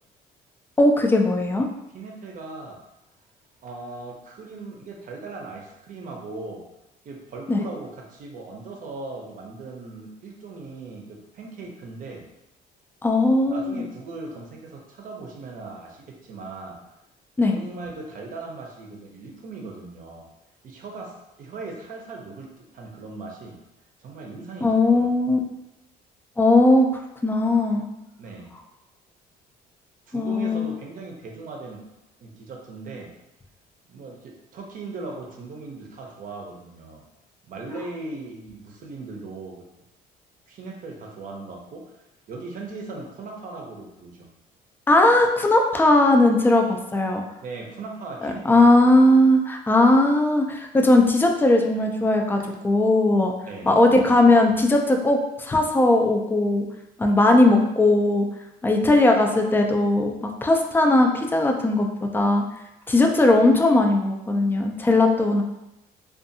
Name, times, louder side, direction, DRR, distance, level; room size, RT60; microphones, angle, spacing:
voice 1, 0.8-1.7 7.5-7.6 13.0-13.8 17.4-17.6 24.6-25.4 26.4-26.9 27.2-27.8 30.1-30.7 44.9-47.2 48.2-53.3 53.7-56.6 57.0-58.3 58.6-61.9 62.1-62.4 62.9-65.4, left 2 dB, 10° left, 3 dB, 0.3 m, -18 dB
voice 2, 1.9-2.8 3.6-6.7 7.0-12.3 13.5-16.8 17.5-20.3 20.6-23.6 24.0-25.1 28.2-28.6 30.1-31.8 32.2-33.1 33.9-37.0 37.4-39.7 40.5-42.0 42.3-44.3 47.4-48.8 52.3-52.4 53.5-53.8, right 3 dB, 55° right, 1 dB, 0.6 m, -38 dB
2.6 x 2.3 x 2.6 m, 0.91 s
cardioid pair, 110°, 17 cm